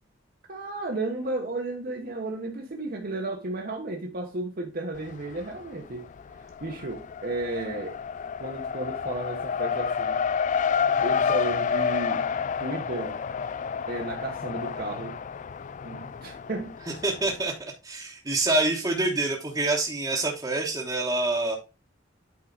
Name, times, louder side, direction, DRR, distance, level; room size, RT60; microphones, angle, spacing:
voice 1, 0.5-6.1 6.4-8.0 8.4-10.3 11.0-12.3 12.6-13.2 13.9-15.2 15.8-16.8, right 2 dB, 50° right, 1.1 m, -33 dB
Race car auto racing, 4.9-5.7 6.0-17.4, left 6 dB, 40° left, 0.3 m, -29 dB
voice 2, 17.0-17.5 17.8-21.6, right 2 dB, 20° right, 1.1 m, -26 dB
8.7 x 4.8 x 3.9 m
head